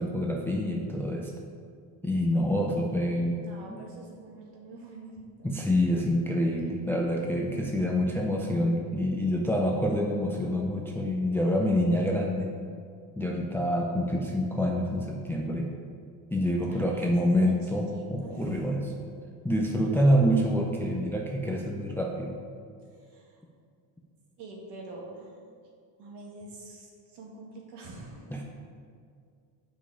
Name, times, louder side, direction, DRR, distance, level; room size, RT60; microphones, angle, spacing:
voice 1, 0.0-1.3 2.0-3.4 5.4-12.5 13.2-15.7 16.3-18.8 19.4-22.4 28.3-28.4, equal, 5° left, 0 dB, 0.4 m, -27 dB
voice 2, 3.3-5.5 16.6-17.5 17.9-18.7 23.0-23.4 24.4-25.4 26.0-28.3, right 2 dB, 60° right, -2 dB, 2.1 m, -46 dB
7.5 x 5.5 x 4.9 m, 2.2 s
cardioid pair, 130°, 46 cm